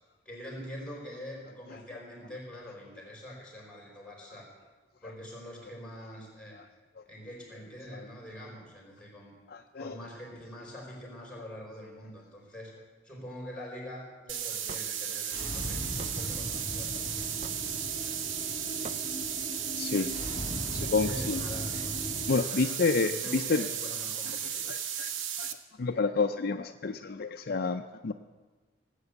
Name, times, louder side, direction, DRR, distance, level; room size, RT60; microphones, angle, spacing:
voice 1, 0.2-4.5 5.0-6.6 7.0-9.3 9.8-12.7 13.0-17.4 21.0-22.0 22.3-24.7, equal, 5° left, -2 dB, 4.7 m, -44 dB
voice 2, 9.5-9.9 19.8-20.1 20.7-21.4 22.3-23.6 24.7-25.1 25.4-25.5 25.8-28.1, left 4 dB, 50° left, 7 dB, 0.5 m, -29 dB
sound 1, 14.3-25.5, right 8 dB, 90° right, 1.0 m, -35 dB
Hammer / Wood, 14.7-14.9 16.0-16.2 17.4-17.7 18.8-19.0, right 3 dB, 35° right, 0.5 m, -43 dB
sound 2, 15.3-22.3, left 1 dB, 30° left, 2.2 m, -38 dB
18.0 x 8.2 x 8.2 m, 1.3 s
head